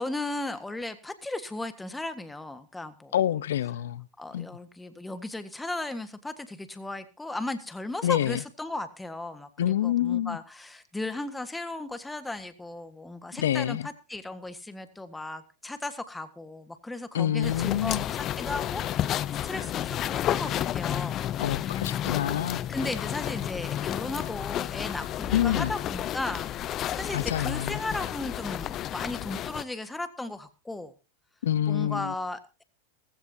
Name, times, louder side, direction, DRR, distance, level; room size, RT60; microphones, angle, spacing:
voice 1, 0.0-3.1 4.2-21.3 21.5-21.9 22.2-30.9 31.7-32.6, left 2 dB, 10° left, 1.6 m, -36 dB
voice 2, 3.1-4.0 4.3-4.5 8.0-8.4 9.6-10.4 13.4-13.8 17.1-18.0 21.4-22.6 25.3-25.7 27.1-27.8 31.4-32.1, left 11 dB, 75° left, 0.7 m, -27 dB
sound 1, 17.4-29.6, left 12 dB, 35° left, 0.6 m, -31 dB
18.0 x 15.5 x 2.8 m
hypercardioid pair, 105°, 0 cm